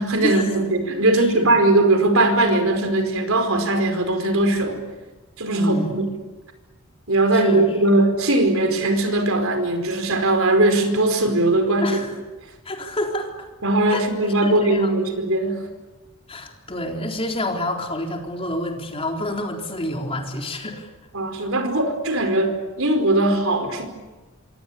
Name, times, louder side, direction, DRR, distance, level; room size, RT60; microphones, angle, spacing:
voice 1, 0.0-4.8 5.4-6.1 7.1-12.0 13.6-15.6 21.1-23.9, right 2 dB, 65° right, 7 dB, 4.8 m, -20 dB
voice 2, 1.1-1.5 5.5-6.0 7.3-7.7 11.8-12.1 12.7-13.5 13.9-14.0 14.4-14.9 16.3-20.9, left 1 dB, 25° left, 2 dB, 3.9 m, -28 dB
26.5 x 25.5 x 8.4 m, 1.2 s
head